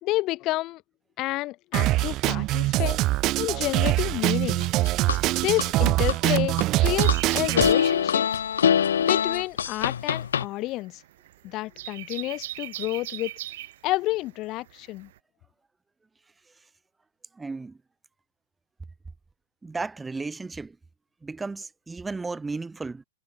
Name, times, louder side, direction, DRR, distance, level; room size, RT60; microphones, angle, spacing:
voice 1, 0.0-0.8 1.2-3.0 3.4-4.6 5.4-8.4 9.0-11.0 11.4-13.3 13.8-15.1, left 18 dB, 35° left, 3.4 m, -29 dB
Drum kit, 1.7-7.7, right 17 dB, 35° right, 2.4 m, -23 dB
sound 1, 4.6-5.7 6.1-7.2 7.6-10.5, left 8 dB, 70° left, 2.0 m, -23 dB
sound 2, 6.9-15.2, right 14 dB, 55° right, 2.1 m, -39 dB
voice 2, 17.3-17.8 19.6-20.8 21.2-23.0, right 3 dB, 10° right, 4.5 m, -34 dB
figure-of-eight pair, 110°, 0 cm